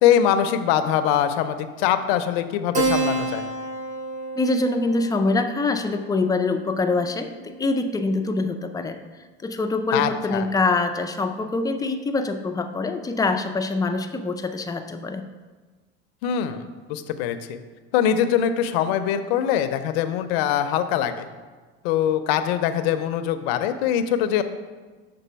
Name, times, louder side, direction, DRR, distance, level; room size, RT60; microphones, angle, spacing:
voice 1, 0.0-3.5 9.9-10.5 16.2-16.6 16.9-17.6 17.9-21.3 21.8-24.4, left 9 dB, 75° left, 9 dB, 0.6 m, -22 dB
Keyboard (musical), 2.7-7.7, right 3 dB, 25° right, 0.7 m, -30 dB
voice 2, 4.4-9.0 9.4-15.2, left 3 dB, 10° left, 6 dB, 0.3 m, -24 dB
6.1 x 3.8 x 5.6 m, 1.3 s
supercardioid pair, 110°, 31 cm